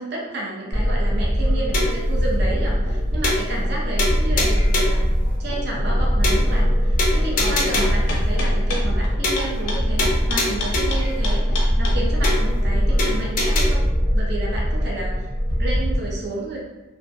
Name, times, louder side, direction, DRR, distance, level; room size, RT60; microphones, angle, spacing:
voice 1, 0.0-13.9 14.1-15.3 15.6-16.6, right 2 dB, 50° right, -3 dB, 0.5 m, -31 dB
sound 1, 0.7-16.0, equal, 85° right, 1.1 m, -21 dB
sound 2, 1.7-2.1 2.5-2.6 2.9-3.0 3.2-3.7 4.0-5.0 5.5-5.6 5.9-6.0 6.2-6.7 7.0-8.1 8.5-8.6 8.9-9.0 9.2-9.7 10.0-11.1 11.5-11.6 11.9-12.0 12.2-12.7 13.0-13.6, left 2 dB, 40° left, 0.4 m, -25 dB
sound 3, 7.5-12.0, left 2 dB, 90° left, 0.6 m, -29 dB
2.5 x 2.0 x 2.4 m, 1.1 s
head